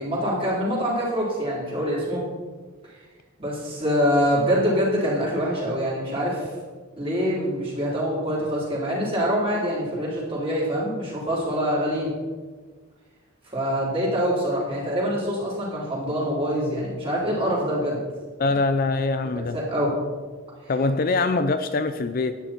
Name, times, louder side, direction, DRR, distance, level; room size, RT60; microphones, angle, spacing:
voice 1, 0.0-2.2 3.4-6.5 7.0-12.1 13.5-18.0 18.4-18.6 19.3-19.9 20.6-20.7, equal, 25° right, -5 dB, 3.9 m, -25 dB
voice 2, 18.4-19.6 20.7-22.4, left 3 dB, 40° left, 10 dB, 0.5 m, -23 dB
11.5 x 9.6 x 4.5 m, 1.4 s
head